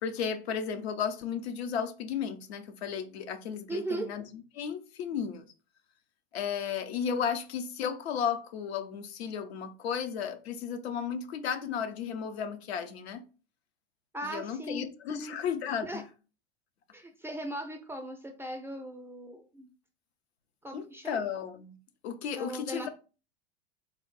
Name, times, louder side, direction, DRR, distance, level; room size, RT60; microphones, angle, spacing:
voice 1, 0.0-4.2 4.5-5.4 6.3-13.2 14.2-16.0 20.7-21.8 22.0-22.9, left 7 dB, 75° left, 0.7 m, -34 dB
voice 2, 3.7-4.1 14.1-15.4 15.9-16.0 16.9-19.7 20.6-21.2 22.4-22.9, right 1 dB, 10° right, 0.4 m, -38 dB
3.5 x 2.1 x 3.9 m
hypercardioid pair, 100°, 32 cm